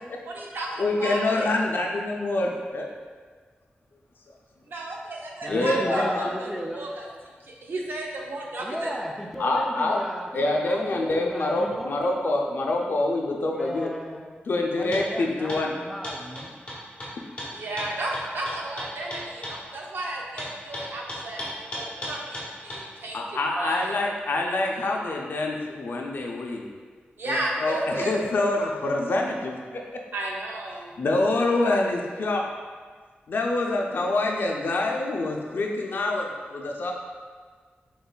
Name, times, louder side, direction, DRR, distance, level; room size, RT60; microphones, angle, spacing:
voice 1, 0.2-1.5 4.7-7.1 7.4-8.9 17.5-21.4 21.7-23.2 23.5-23.9 27.2-28.6 30.1-30.9, right 1 dB, 65° right, -2 dB, 0.6 m, -33 dB
voice 2, 0.8-2.9 5.5-6.3 9.4-10.0 10.3-13.9 14.5-15.7 23.1-26.7 27.3-29.8 31.0-32.4 33.3-36.9, left 2 dB, 65° left, 0 dB, 0.4 m, -26 dB
voice 3, 5.4-6.8 8.6-12.0 13.5-14.3 14.8-16.5, equal, ahead, -1 dB, 0.4 m, -34 dB
sound 1, 14.9-15.1 15.5-15.6 16.0-19.6 20.4-22.8, equal, 30° left, 1.0 m, -35 dB
3.9 x 3.9 x 2.2 m, 1.6 s
wide cardioid pair, 145°, 4 cm